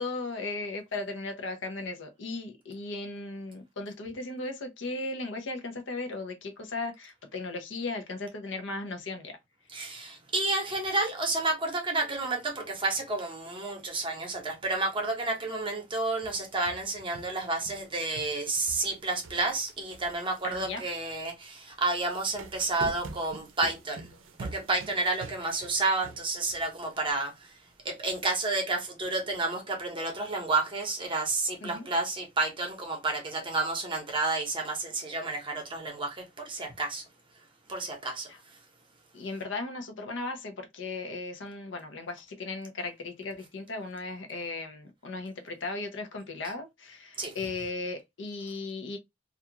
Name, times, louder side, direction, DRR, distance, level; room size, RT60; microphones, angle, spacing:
voice 1, 0.0-9.4 20.4-20.8 31.6-31.9 38.3-38.4 39.1-49.0, left 3 dB, 70° left, 0.6 m, -36 dB
voice 2, 9.7-24.1 24.4-27.5 27.8-37.0 37.7-38.3 47.2-47.3, right 3 dB, 25° right, 0.8 m, -30 dB
sound 1, 16.2-17.9 18.1-21.3 21.9-26.6 27.0-27.1 28.2-28.3, right 3 dB, 85° right, 0.5 m, -46 dB
2.5 x 2.3 x 2.8 m
head